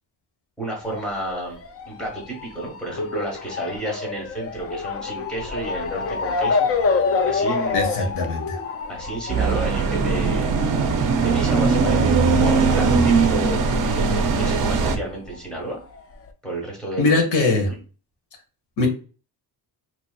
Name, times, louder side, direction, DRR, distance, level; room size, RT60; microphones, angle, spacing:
voice 1, 0.6-1.6 1.8-6.7 7.2-8.1 8.9-10.5 11.2-13.6 13.9-15.8 16.4-17.2 17.7-17.8, right 2 dB, ahead, -2 dB, 1.5 m, -31 dB
Motor vehicle (road) / Siren, 0.8-13.8 14.1-15.3 15.9-16.0 16.3-16.4, left 4 dB, 35° left, 0.4 m, -28 dB
voice 2, 7.7-8.6 17.0-17.7 18.8-18.9, left 3 dB, 70° left, 3 dB, 1.2 m, -21 dB
sound 1, 9.3-15.0, right 4 dB, 50° right, 0.6 m, -20 dB
4.4 x 3.0 x 2.2 m, 0.36 s
cardioid pair, 175°, 43 cm